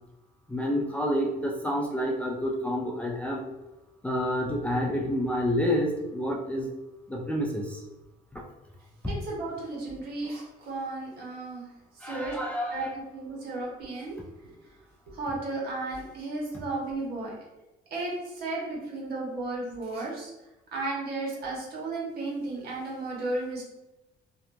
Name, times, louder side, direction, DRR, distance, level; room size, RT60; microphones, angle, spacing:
voice 1, 0.5-3.5 4.0-6.7 7.1-7.8 8.3-8.4 9.0-9.1 12.0-13.0, equal, 5° left, -1 dB, 0.3 m, -29 dB
voice 2, 9.1-11.7 12.0-12.4 12.7-14.2 14.4-14.5 15.1-17.3 17.9-20.3 20.7-23.6, right 2 dB, 60° right, -3 dB, 1.1 m, -34 dB
2.7 x 2.3 x 2.6 m, 1.0 s
cardioid pair, 100°, 18 cm